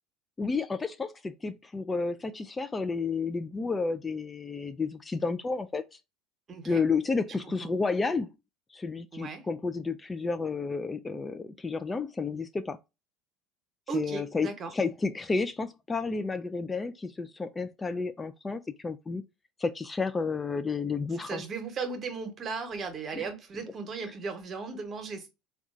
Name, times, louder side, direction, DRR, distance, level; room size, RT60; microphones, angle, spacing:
voice 1, 0.4-5.8 6.7-8.3 8.7-12.8 13.9-19.2 19.6-21.4 23.1-23.3, left 4 dB, 20° left, 0.3 m, -31 dB
voice 2, 6.5-6.8 7.6-7.7 9.1-9.5 13.9-14.7 21.1-25.3, right 5 dB, 35° right, 1.0 m, -36 dB
3.7 x 2.3 x 2.4 m
hypercardioid pair, 75°, 0 cm